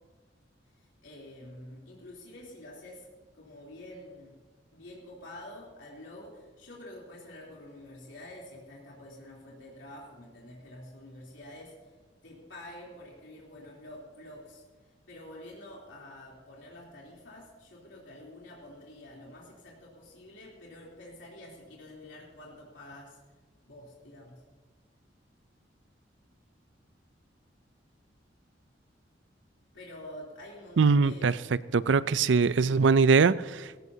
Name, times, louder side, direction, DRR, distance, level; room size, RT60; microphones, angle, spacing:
voice 1, 0.8-3.0 3.3-4.4 4.7-11.9 12.2-14.6 15.1-23.2 23.6-24.4 29.7-31.8 32.6-32.9, left 1 dB, 85° left, -4 dB, 3.4 m, -48 dB
voice 2, 30.8-31.3 31.7-33.8, right 5 dB, 80° right, 17 dB, 0.5 m, -22 dB
19.0 x 17.0 x 2.8 m, 1.4 s
head